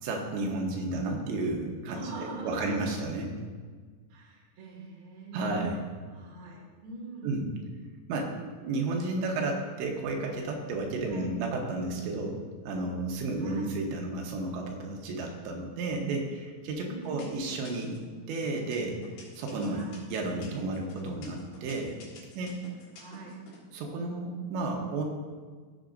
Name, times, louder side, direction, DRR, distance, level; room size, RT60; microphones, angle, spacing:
voice 1, 0.0-3.3 5.3-5.8 7.2-7.5 8.1-18.0 18.3-19.0 19.4-19.8 20.1-22.0 22.4-22.6 23.7-25.0, right 2 dB, 85° right, 1 dB, 3.4 m, -32 dB
voice 2, 1.9-2.8 4.1-5.5 6.1-7.3 11.1-11.3 13.4-13.7 16.9-17.3 19.7-20.0 23.0-23.4, right 2 dB, 40° right, -4 dB, 2.0 m, -43 dB
sound 1, 16.1-16.6 17.0-18.1 18.6-23.6, left 4 dB, 85° left, 4.0 m, -50 dB
14.5 x 7.1 x 2.6 m, 1.5 s
omnidirectional pair, 5.0 m